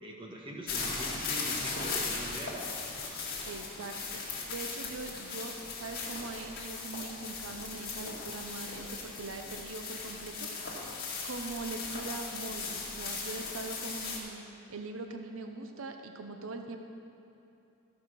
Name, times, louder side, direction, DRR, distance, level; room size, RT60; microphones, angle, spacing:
voice 1, 0.0-2.6, right 1 dB, 25° right, -1 dB, 1.3 m, -42 dB
sound 1, 0.7-14.2, left 4 dB, 45° left, 2.1 m, -38 dB
voice 2, 3.5-4.2 4.5-10.5 10.8-16.8, right 3 dB, 70° right, 5 dB, 0.7 m, -42 dB
14.5 x 5.6 x 6.1 m, 3.0 s
head